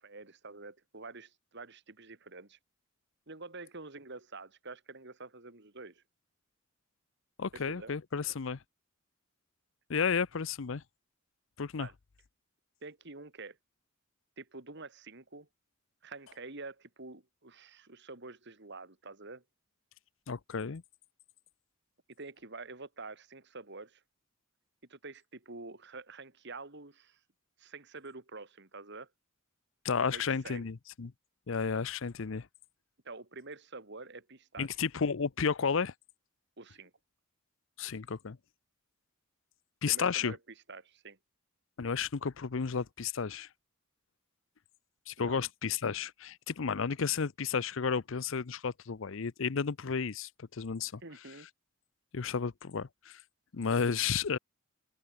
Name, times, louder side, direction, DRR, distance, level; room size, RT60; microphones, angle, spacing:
voice 1, 0.0-2.6 3.3-6.0 7.5-7.9 11.8-11.9 12.8-13.6 14.4-15.5 16.0-19.4 22.2-24.0 24.9-27.2 27.6-29.1 30.0-30.6 33.0-34.7 36.6-36.9 39.9-40.4 40.7-41.2 45.2-45.5 51.0-51.5, right 3 dB, 55° right, 2.6 m, -47 dB
voice 2, 7.4-8.6 9.9-10.8 11.6-11.9 20.3-20.8 29.8-31.1 31.5-32.5 34.6-35.9 37.8-38.4 39.8-40.3 41.8-43.5 45.1-51.0 52.1-53.2 53.5-54.4, left 6 dB, 65° left, 0.6 m, -32 dB
open air
head